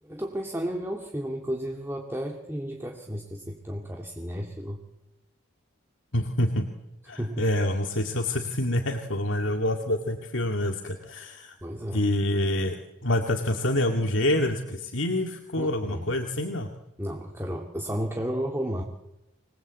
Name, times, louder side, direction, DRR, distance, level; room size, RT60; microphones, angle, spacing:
voice 1, 0.0-4.8 7.1-7.5 11.6-12.1 15.5-16.1 17.0-18.8, equal, 10° right, 1 dB, 2.5 m, -33 dB
voice 2, 6.1-6.7 7.1-11.5 11.9-12.8 13.0-16.7, left 1 dB, 80° left, 3 dB, 2.3 m, -26 dB
26.5 x 20.5 x 8.3 m, 0.91 s
head